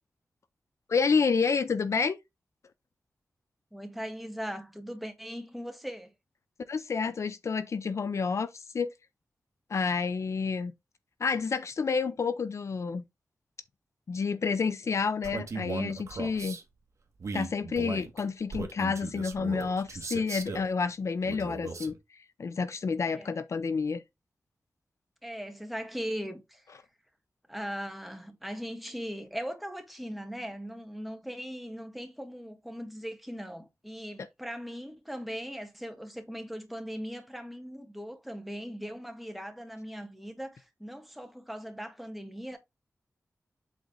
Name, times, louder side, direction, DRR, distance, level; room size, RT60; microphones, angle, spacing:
voice 1, 0.9-2.2 6.7-8.9 9.7-10.7 11.2-13.0 14.1-16.6 17.3-24.0, left 5 dB, 60° left, 0.5 m, -29 dB
voice 2, 3.7-6.1 23.0-23.3 25.2-26.6 27.5-42.6, equal, ahead, 1.6 m, -39 dB
Male speech man speaking, 15.2-16.6 17.2-20.7 21.2-22.0, right 4 dB, 65° right, 1.4 m, -38 dB
8.1 x 3.9 x 3.8 m
wide cardioid pair, 110°, 6 cm